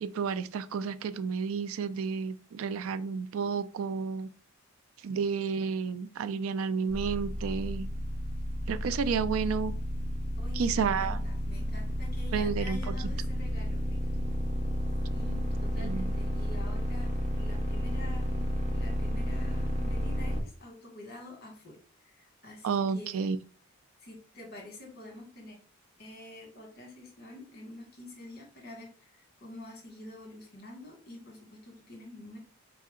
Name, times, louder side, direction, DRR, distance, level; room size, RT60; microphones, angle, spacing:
voice 1, 0.0-4.3 5.0-7.9 8.7-9.7 10.6-11.2 12.3-12.8 15.8-16.2 22.6-23.4, right 6 dB, 75° right, 0.3 m, -31 dB
sound 1, 6.9-20.4, equal, 35° right, 0.7 m, -32 dB
voice 2, 10.4-14.3 15.1-21.8 22.0-23.4 24.0-25.6 26.0-29.1 29.4-32.4, left 2 dB, 45° left, 1.4 m, -47 dB
4.1 x 2.8 x 3.6 m
head